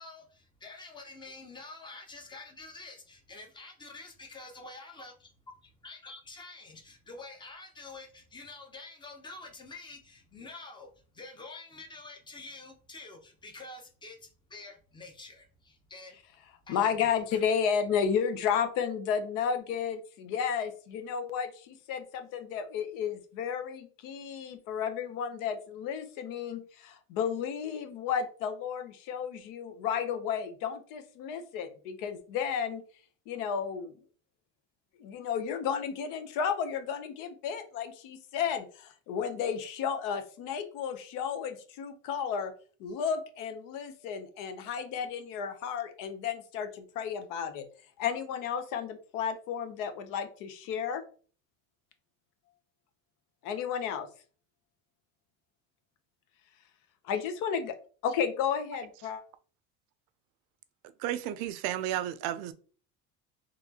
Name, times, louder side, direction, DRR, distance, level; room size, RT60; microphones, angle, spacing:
voice 1, 0.0-5.1 5.8-10.9 11.1-16.2 16.7-17.4, left 3 dB, 15° left, 0.7 m, -47 dB
voice 2, 16.7-32.8 33.3-33.9 35.0-42.5 42.8-47.6 48.0-51.0 53.4-54.1 57.1-57.7 58.0-59.2, left 7 dB, 70° left, 0.8 m, -32 dB
voice 3, 61.0-62.5, right 12 dB, 75° right, 0.5 m, -32 dB
4.1 x 3.1 x 2.8 m
cardioid pair, 155°, 34 cm